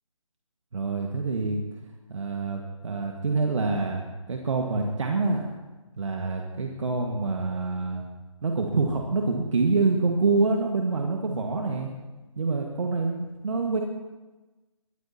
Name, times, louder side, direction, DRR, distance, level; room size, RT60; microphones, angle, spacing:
voice 1, 0.7-1.6 2.1-5.5 6.0-8.0 8.4-11.9 12.4-13.8, right 3 dB, 60° right, 1 dB, 1.6 m, -26 dB
21.5 x 13.0 x 2.8 m, 1.2 s
figure-of-eight pair, 150°, 18 cm